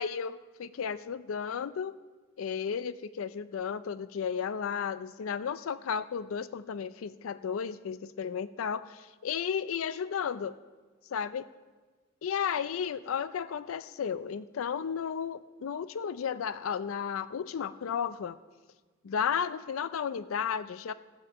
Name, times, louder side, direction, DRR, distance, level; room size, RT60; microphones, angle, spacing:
voice 1, 0.0-1.9 2.4-10.6 11.1-11.4 12.2-18.4 19.0-20.9, left 7 dB, 90° left, 15 dB, 0.4 m, -33 dB
15.0 x 6.9 x 7.0 m, 1.4 s
head